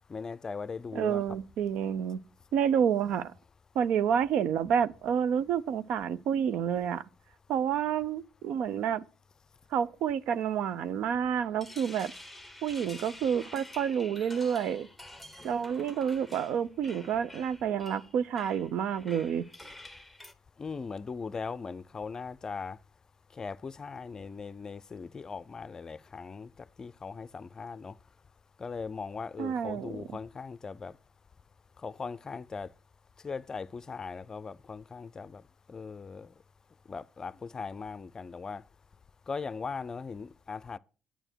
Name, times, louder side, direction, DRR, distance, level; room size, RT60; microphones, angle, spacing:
voice 1, 0.1-1.4 20.6-22.8 23.4-27.9 28.6-30.9 31.8-32.7 33.2-35.4 35.7-36.3 36.9-38.6 39.3-40.8, left 5 dB, 30° left, 0.5 m, -39 dB
voice 2, 0.9-2.2 2.5-3.3 3.7-7.0 7.5-9.0 9.7-12.1 12.6-14.9 15.4-19.4 29.4-29.9, right 8 dB, 70° right, 0.6 m, -29 dB
sound 1, 11.4-20.3, left 1 dB, ahead, 1.1 m, -49 dB
9.0 x 9.0 x 4.5 m
supercardioid pair, 80°, 2 cm